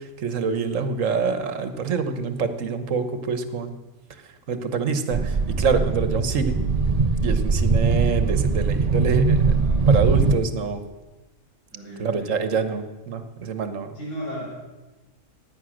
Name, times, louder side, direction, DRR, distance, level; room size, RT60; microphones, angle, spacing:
voice 1, 0.0-3.8 4.5-6.5 7.2-9.4 9.9-10.8 12.0-13.9, right 5 dB, 70° right, 10 dB, 1.5 m, -26 dB
sound 1, 5.1-10.3, right 4 dB, 35° right, 0.7 m, -21 dB
voice 2, 9.5-9.9 11.7-12.4 13.9-14.5, equal, 65° left, -4 dB, 6.2 m, -36 dB
16.0 x 9.8 x 6.4 m, 1.1 s
omnidirectional pair, 1.4 m